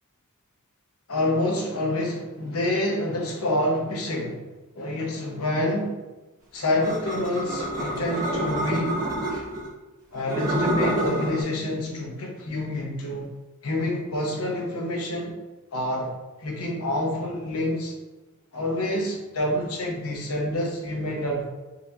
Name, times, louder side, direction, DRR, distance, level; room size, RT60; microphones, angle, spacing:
voice 1, 1.1-4.5 4.7-6.0 6.5-9.5 10.1-13.3 13.6-15.4 15.7-16.1 16.4-17.9 18.5-21.4, left 1 dB, 80° left, -1 dB, 0.9 m, -27 dB
sound 1, 6.8-9.7 10.2-11.4, right 1 dB, 40° right, 1.4 m, -28 dB
4.1 x 2.8 x 2.6 m, 1.2 s
head